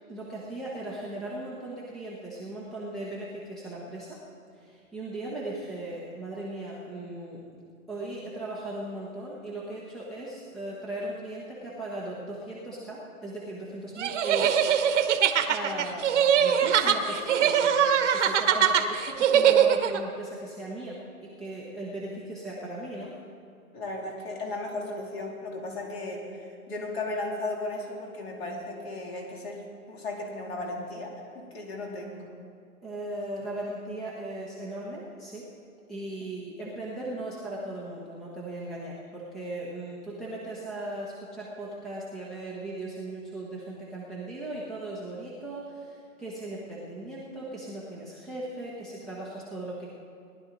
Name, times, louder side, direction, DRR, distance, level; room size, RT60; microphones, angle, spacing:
voice 1, 0.1-4.2 4.5-7.6 7.9-14.7 15.5-23.1 32.8-35.5 35.9-49.9, right 1 dB, ahead, -5 dB, 0.7 m, -38 dB
sound 1, 14.0-20.0, right 8 dB, 50° right, 1.0 m, -22 dB
voice 2, 23.7-29.6 29.9-32.3 36.2-36.3, left 2 dB, 45° left, -1 dB, 3.0 m, -35 dB
19.0 x 11.0 x 3.9 m, 2.4 s
hypercardioid pair, 150°, 44 cm